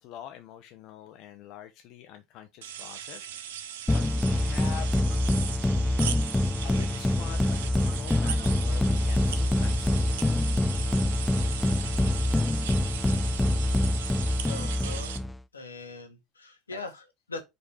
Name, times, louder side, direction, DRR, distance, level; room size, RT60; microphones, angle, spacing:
voice 1, 0.0-3.3 3.9-4.9 6.6-10.2 16.7-16.8, left 10 dB, 55° left, 0.9 m, -45 dB
sound 1, 2.6-15.2, right 10 dB, 70° right, 0.9 m, -38 dB
sound 2, 3.9-15.4, left 1 dB, 10° left, 0.5 m, -25 dB
voice 2, 14.4-15.1 15.5-17.4, left 3 dB, 85° left, 1.7 m, -41 dB
5.3 x 4.8 x 4.9 m
figure-of-eight pair, 75°, 0 cm